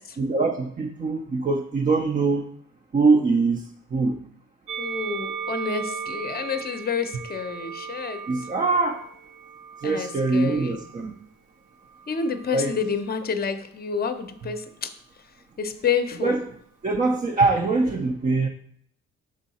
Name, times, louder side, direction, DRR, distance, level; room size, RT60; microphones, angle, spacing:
voice 1, 0.2-2.5 2.9-3.6 3.9-4.2 8.3-9.0 9.8-11.1 12.5-12.8 16.2-16.4 16.8-18.5, right 3 dB, 25° right, 2 dB, 0.5 m, -23 dB
Musical instrument, 4.7-11.1 11.9-12.9, right 7 dB, 85° right, 0.6 m, -37 dB
voice 2, 4.8-8.2 9.8-10.8 12.1-14.9 15.6-16.4, left 6 dB, 30° left, 9 dB, 0.7 m, -29 dB
6.3 x 3.7 x 4.1 m, 0.67 s
cardioid pair, 90°, 30 cm